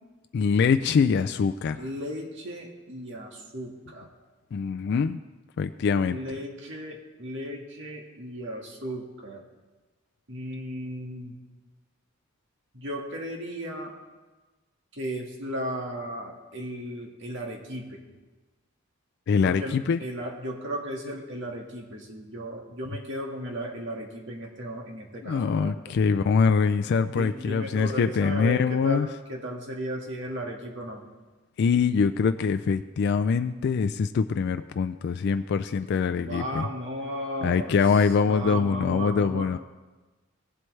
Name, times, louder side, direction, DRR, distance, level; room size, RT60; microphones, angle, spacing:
voice 1, 0.3-1.9 4.5-5.2 5.6-6.2 19.3-20.0 25.2-29.1 31.6-36.7 37.4-39.6, left 5 dB, 55° left, 9 dB, 0.3 m, -24 dB
voice 2, 1.8-4.1 6.1-9.4 10.3-11.3 12.7-13.9 15.0-18.0 19.4-25.7 27.1-31.0 36.2-37.8 38.3-39.6, equal, 65° right, 0 dB, 1.8 m, -35 dB
17.5 x 7.7 x 3.2 m, 1.2 s
head